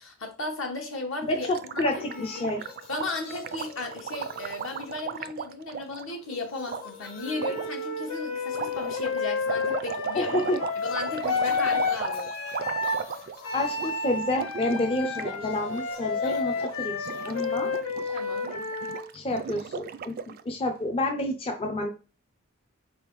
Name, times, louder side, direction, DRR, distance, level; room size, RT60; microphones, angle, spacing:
voice 1, 0.0-2.5 2.9-10.5 10.8-12.3 18.1-18.5, left 2 dB, 65° left, 3 dB, 1.2 m, -35 dB
voice 2, 1.3-2.6 10.1-10.6 13.5-17.7 18.0-18.1 18.5-18.6 19.1-20.2 20.4-21.9, left 1 dB, 25° left, 3 dB, 0.5 m, -29 dB
Gurgling, 1.4-6.0 6.7-6.8 7.4-7.7 8.5-13.5 13.7-13.9 14.2-15.4 15.6-15.8 16.2-16.7 17.0-20.4, right 7 dB, 45° right, 0.3 m, -36 dB
sound 1, 1.7-5.6 5.9-9.7 10.7-18.7, left 4 dB, 45° left, 1.0 m, -48 dB
Wind instrument woodwind instrument, 7.2-13.0 13.4-19.1, left 4 dB, 90° left, 0.9 m, -31 dB
4.3 x 3.5 x 3.0 m, 0.35 s
head